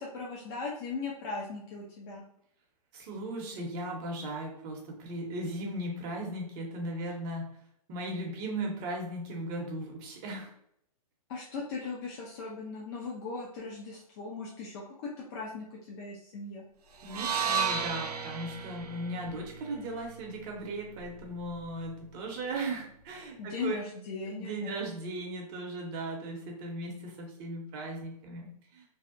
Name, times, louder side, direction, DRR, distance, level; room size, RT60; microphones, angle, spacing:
voice 1, 0.0-2.2 11.3-16.6 23.4-24.9, left 4 dB, 40° left, -3 dB, 0.5 m, -38 dB
voice 2, 2.9-7.5 7.9-10.5 17.0-23.8 24.3-28.8, right 1 dB, 35° right, 0 dB, 0.7 m, -37 dB
sound 1, 17.0-21.2, right 6 dB, 90° right, 0.4 m, -34 dB
2.7 x 2.0 x 2.4 m, 0.71 s
hypercardioid pair, 130°, 19 cm